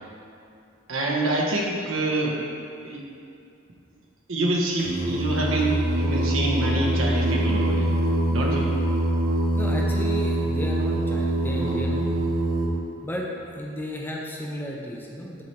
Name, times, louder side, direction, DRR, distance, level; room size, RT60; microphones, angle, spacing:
voice 1, 0.9-2.4 2.8-3.0 4.3-8.0 8.3-8.7, right 2 dB, 80° right, -2 dB, 0.9 m, -26 dB
Singing, 4.8-12.7, right 1 dB, 45° right, 1.0 m, -24 dB
voice 2, 9.6-12.3 13.0-15.4, equal, 10° left, -2 dB, 0.6 m, -33 dB
7.5 x 3.2 x 4.3 m, 2.6 s
head